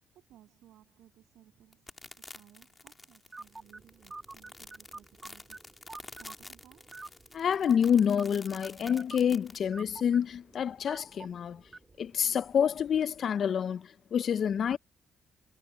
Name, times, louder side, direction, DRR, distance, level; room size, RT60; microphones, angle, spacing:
voice 1, 0.1-5.8 6.2-7.0, right 13 dB, 80° right, 7.6 m, -60 dB
sound 1, 1.7-9.6, left 2 dB, 20° left, 1.9 m, -49 dB
sound 2, 3.3-12.8, right 3 dB, 20° right, 3.5 m, -50 dB
voice 2, 7.3-11.6 12.0-14.8, left 8 dB, 55° left, 0.4 m, -28 dB
cardioid pair, 90°, 0 cm